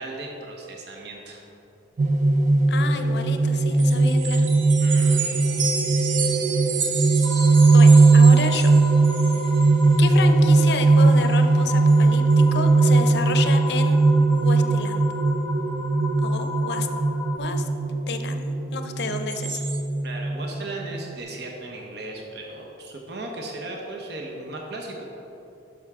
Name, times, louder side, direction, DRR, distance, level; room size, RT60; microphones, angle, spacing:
voice 1, 0.0-1.4 4.8-5.4 20.0-25.0, right 2 dB, 60° right, 0 dB, 1.0 m, -36 dB
sound 1, 2.0-21.2, right 3 dB, 40° right, 0.4 m, -19 dB
voice 2, 2.7-4.5 7.7-8.7 10.0-12.2 12.5-14.0 14.4-15.0 16.2-16.9 17.3-17.7 18.1-19.6, left 4 dB, 60° left, 7 dB, 0.5 m, -30 dB
sound 2, 3.7-10.2 10.5-10.8 11.2-11.3 11.7-12.0 12.3-12.4 13.0-13.1 13.4-13.7 19.3-19.8, right 6 dB, 90° right, 0.7 m, -31 dB
sound 3, 7.2-17.4, left 5 dB, 20° left, 0.6 m, -36 dB
10.5 x 6.2 x 3.6 m, 3.0 s
head